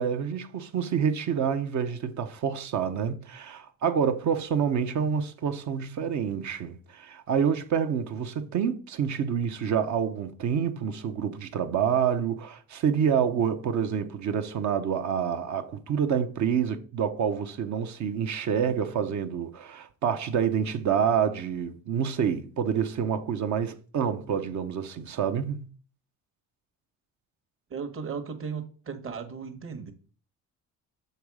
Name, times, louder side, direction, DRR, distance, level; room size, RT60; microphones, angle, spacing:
voice 1, 0.0-25.7, right 7 dB, 60° right, 0.9 m, -27 dB
voice 2, 27.7-29.9, right 6 dB, 40° right, 1.4 m, -36 dB
7.0 x 3.9 x 4.8 m
cardioid pair, 90°, 32 cm